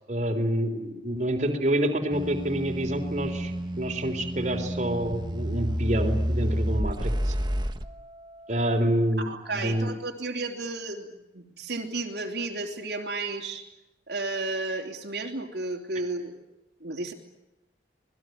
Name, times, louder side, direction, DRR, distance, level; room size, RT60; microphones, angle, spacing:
voice 1, 0.1-3.5 3.8-7.3 8.5-9.3 9.5-9.9, right 1 dB, 40° right, 3 dB, 3.8 m, -27 dB
sound 1, 2.1-7.8, equal, 25° right, 1.3 m, -29 dB
voice 2, 9.2-13.6 14.1-16.4 16.8-17.1, right 3 dB, 65° right, 2 dB, 3.4 m, -33 dB
27.0 x 20.5 x 9.4 m, 0.96 s
head